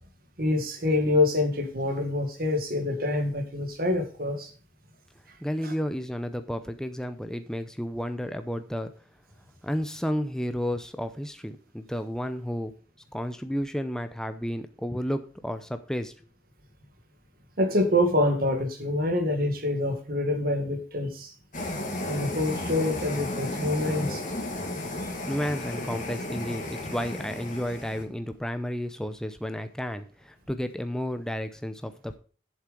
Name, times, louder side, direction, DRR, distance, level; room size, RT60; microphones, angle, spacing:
voice 1, 0.4-4.5 5.6-5.7 17.6-21.3 22.1-24.2, left 1 dB, 50° right, 5 dB, 1.9 m, -26 dB
voice 2, 5.4-8.9 9.6-12.7 13.1-16.1 25.3-32.2, equal, 5° left, 9 dB, 0.6 m, -32 dB
sound 1, 21.5-28.0, left 1 dB, 45° left, 2.1 m, -33 dB
7.6 x 7.3 x 5.2 m, 0.38 s
head